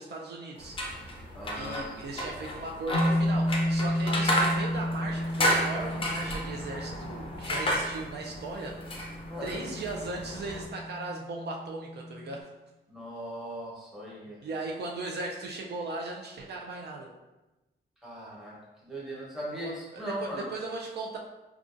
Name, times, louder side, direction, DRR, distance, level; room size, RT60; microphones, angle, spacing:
voice 1, 0.0-12.5 14.4-17.1 19.5-21.2, right 2 dB, 60° right, 0 dB, 0.4 m, -38 dB
sound 1, 0.6-10.7, equal, 30° left, 0.4 m, -32 dB
voice 2, 1.3-1.9 9.3-9.6 12.9-14.4 18.0-18.5 18.8-20.4, equal, ahead, -6 dB, 0.9 m, -38 dB
sound 2, 2.9-12.4, equal, 90° left, 0.4 m, -32 dB
4.9 x 2.3 x 2.5 m, 1.1 s
wide cardioid pair, 175°, 19 cm